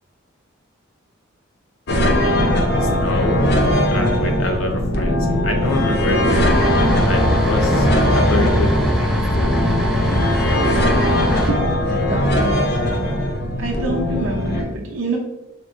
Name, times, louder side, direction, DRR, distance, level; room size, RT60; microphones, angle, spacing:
sound 1, 1.9-14.6, left 1 dB, 55° left, 0.6 m, -19 dB
voice 1, 2.2-3.4 3.9-6.7 7.0-7.9 8.1-9.2, left 2 dB, 85° left, 3 dB, 0.8 m, -26 dB
sound 2, 6.3-11.5, equal, ahead, 0.9 m, -21 dB
voice 2, 11.5-13.3 13.6-15.2, right 2 dB, 65° right, -3 dB, 0.6 m, -27 dB
4.3 x 3.9 x 2.4 m, 0.95 s
head